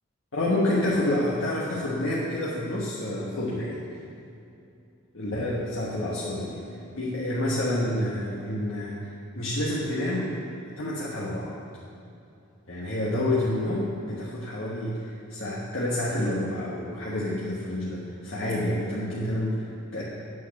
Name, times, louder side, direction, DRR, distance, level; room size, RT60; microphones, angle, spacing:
voice 1, 0.3-3.8 5.1-6.7 6.9-10.4 10.8-11.5 12.7-20.0, left 1 dB, 70° left, -6 dB, 1.4 m, -28 dB
9.2 x 6.4 x 7.1 m, 2.6 s
head